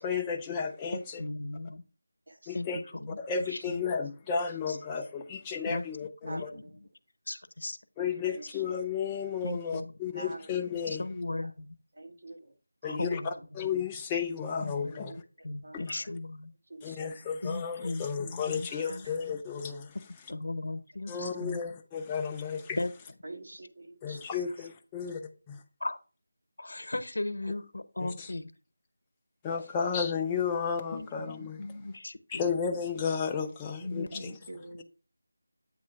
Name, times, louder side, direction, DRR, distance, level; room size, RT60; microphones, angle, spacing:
voice 1, 0.0-1.2 2.5-2.8 3.2-6.5 8.0-11.1 12.8-15.1 15.7-15.8 16.8-20.0 21.1-22.8 24.0-25.2 25.5-25.6 28.0-28.3 29.4-31.7 32.3-34.3, left 6 dB, 10° left, 0.4 m, -33 dB
voice 2, 0.9-1.8 2.5-2.7 2.9-3.2 3.5-3.8 4.7-4.8 5.7-5.8 6.2-6.8 7.3-7.8 9.4-9.9 10.9-11.7 12.8-13.3 14.6-14.9 15.4-16.5 17.4-19.1 20.3-21.6 22.8-22.9 25.8-26.0 26.6-28.5 30.9-32.4 33.8-34.4, left 2 dB, 70° left, 0.8 m, -37 dB
voice 3, 2.3-2.6 3.5-4.0 6.2-6.7 7.3-7.4 8.2-8.6 10.1-10.4 12.0-12.5 12.8-13.3 14.9-15.2 15.6-15.9 16.7-17.2 18.7-19.0 21.1-21.4 23.2-24.2 34.1-34.8, right 2 dB, 60° right, 1.2 m, -46 dB
8.3 x 2.9 x 5.6 m
figure-of-eight pair, 175°, 0 cm